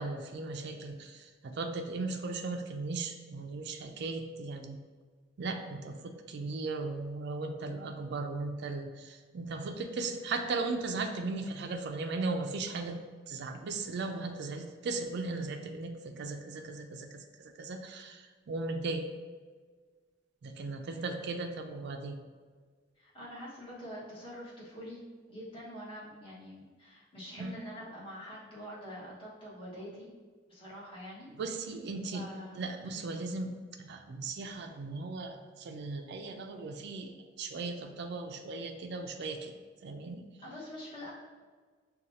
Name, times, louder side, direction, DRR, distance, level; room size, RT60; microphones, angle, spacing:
voice 1, 0.0-4.8 5.4-13.0 13.3-19.1 20.4-22.2 27.3-27.5 31.3-32.3 32.5-33.5 33.8-39.6 39.8-40.2, right 3 dB, 60° right, 4 dB, 0.4 m, -37 dB
voice 2, 23.0-25.0 25.3-30.1 30.5-31.3 32.1-32.6 40.4-41.1, equal, 30° left, -8 dB, 1.4 m, -45 dB
6.2 x 2.3 x 2.8 m, 1.5 s
head